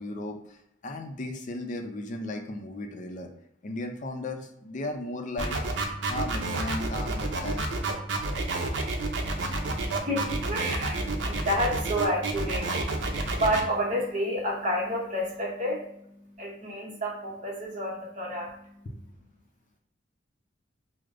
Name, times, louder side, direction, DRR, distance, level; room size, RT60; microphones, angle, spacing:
voice 1, 0.0-3.3 3.6-5.6 6.1-7.7, left 2 dB, 45° left, 4 dB, 0.5 m, -35 dB
sound 1, 5.4-13.6, right 3 dB, 80° right, 0.5 m, -30 dB
voice 2, 9.2-19.1, equal, 45° right, -3 dB, 0.8 m, -31 dB
4.6 x 2.0 x 2.5 m, 0.75 s
head